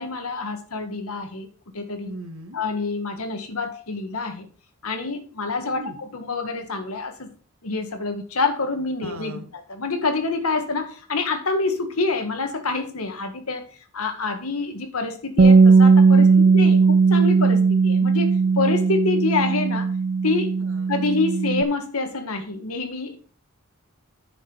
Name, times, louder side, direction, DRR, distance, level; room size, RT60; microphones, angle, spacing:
voice 1, 0.0-1.5 1.7-2.1 2.5-4.5 4.8-7.3 7.6-9.3 9.7-13.7 13.9-19.9 20.2-20.5 20.9-23.2, left 3 dB, 90° left, 7 dB, 1.6 m, -27 dB
voice 2, 2.0-2.6 5.7-6.0 9.0-9.5 16.1-16.5 20.6-20.9, right 1 dB, 70° right, 6 dB, 1.7 m, -38 dB
Bass guitar, 15.4-21.6, right 4 dB, 45° right, 0.5 m, -17 dB
10.0 x 6.0 x 4.6 m, 0.42 s
head